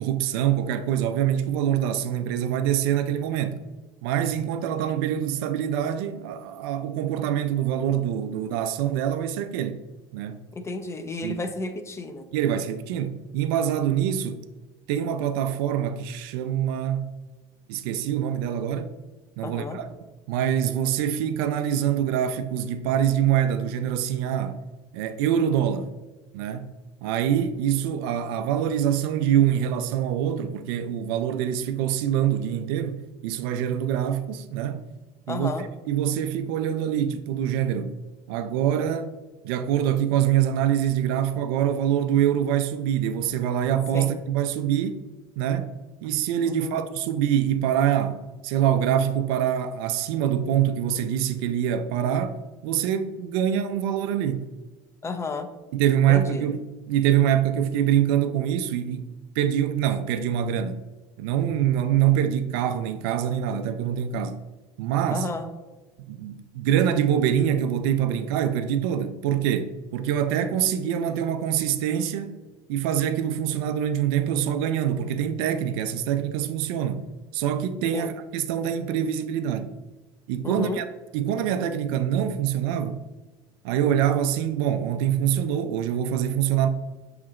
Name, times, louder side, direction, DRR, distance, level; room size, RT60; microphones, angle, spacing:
voice 1, 0.0-3.6 4.0-9.8 10.1-10.4 11.2-11.4 12.3-14.4 14.9-17.1 17.7-18.9 19.4-19.9 20.3-24.6 24.9-25.9 26.3-26.7 27.0-34.8 35.3-35.5 35.9-37.9 38.3-39.1 39.4-45.0 45.4-45.7 46.0-52.4 52.6-54.5 55.7-59.1 59.4-60.8 61.2-64.4 64.8-65.3 66.1-72.4 72.7-77.0 77.3-79.7 80.3-80.9 81.1-83.0 83.6-86.7, right 10 dB, 70° right, 0.4 m, -25 dB
voice 2, 10.5-12.3 19.4-19.8 35.3-35.7 43.9-44.1 46.5-46.8 55.0-55.5 56.1-56.5 65.1-65.4 77.9-78.1 80.4-80.8, left 3 dB, 20° left, 0.5 m, -32 dB
6.2 x 2.9 x 2.4 m
hypercardioid pair, 85°, 13 cm